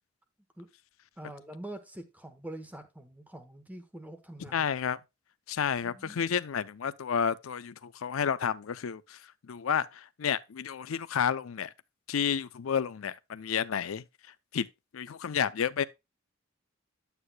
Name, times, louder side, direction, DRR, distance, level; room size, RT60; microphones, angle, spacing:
voice 1, 1.2-4.7 5.8-6.2, right 1 dB, 10° right, 1.0 m, -45 dB
voice 2, 4.5-5.0 5.5-9.2 9.5-11.7 12.1-14.0 14.5-14.7 14.9-15.9, left 7 dB, 85° left, 0.5 m, -30 dB
9.6 x 8.2 x 2.2 m
head